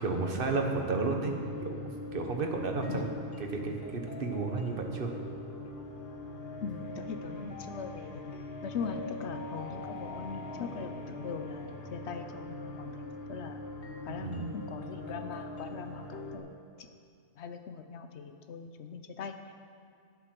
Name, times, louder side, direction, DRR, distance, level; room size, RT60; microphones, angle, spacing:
voice 1, 0.0-1.4 1.6-3.1 3.4-5.1 14.1-14.6, right 3 dB, 55° right, 3 dB, 1.3 m, -32 dB
sound 1, 1.4-16.4, left 2 dB, 65° left, 1.3 m, -42 dB
voice 2, 2.9-3.3 6.6-8.3 8.6-13.6 14.0-16.5 16.8-16.9 17.4-19.5, left 5 dB, 80° left, 7 dB, 1.0 m, -41 dB
sound 2, 6.7-12.9, left 2 dB, 5° right, 1.7 m, -51 dB
12.0 x 8.2 x 6.0 m, 2.2 s
omnidirectional pair, 1.1 m